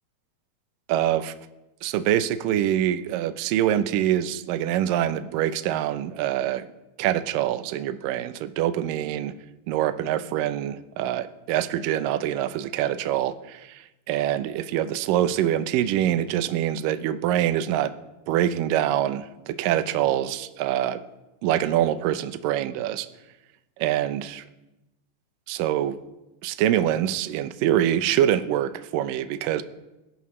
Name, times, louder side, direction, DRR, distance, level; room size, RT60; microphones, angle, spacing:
voice 1, 0.9-1.3 1.8-6.7 7.0-9.3 9.7-17.9 18.3-21.0 21.4-23.1 23.8-24.4 25.5-26.0 26.4-29.6, right 11 dB, 75° right, 2.1 m, -25 dB
22.5 x 13.0 x 3.2 m
omnidirectional pair, 4.7 m